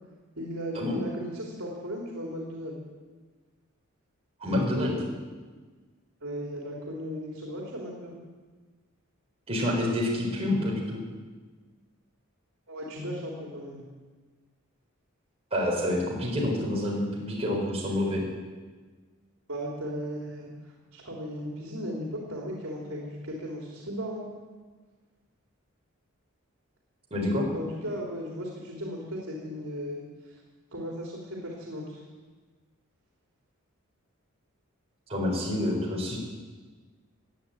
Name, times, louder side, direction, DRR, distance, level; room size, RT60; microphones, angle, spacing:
voice 1, 0.4-2.8 6.2-8.1 12.7-13.8 19.5-20.5 20.9-24.3 27.5-30.4 30.7-32.0, equal, 70° right, -2 dB, 3.5 m, -36 dB
voice 2, 4.4-5.0 9.5-11.0 15.5-18.2 27.1-27.5 35.1-36.2, left 1 dB, 30° right, -3 dB, 4.3 m, -27 dB
16.0 x 9.7 x 8.8 m, 1.4 s
head